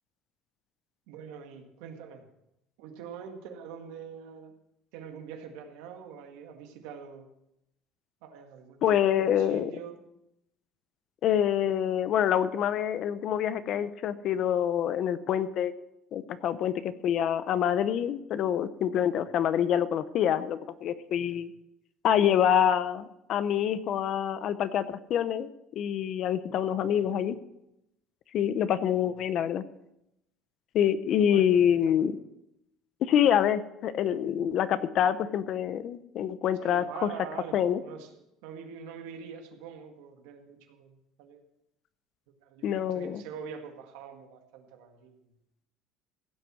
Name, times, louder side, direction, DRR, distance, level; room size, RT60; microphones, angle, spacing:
voice 1, 1.1-2.3 2.8-4.5 4.9-7.3 8.2-10.0 21.2-21.4 26.7-27.2 28.9-29.1 31.2-32.0 36.6-41.4 42.4-45.1, right 7 dB, 85° right, 4 dB, 2.0 m, -45 dB
voice 2, 8.8-9.7 11.2-15.7 16.1-21.5 22.0-27.4 28.3-29.6 30.7-32.2 33.0-37.1 37.5-37.8 42.6-43.2, left 9 dB, 50° left, 14 dB, 0.8 m, -26 dB
16.0 x 7.6 x 6.3 m, 0.84 s
cardioid pair, 145°, 0 cm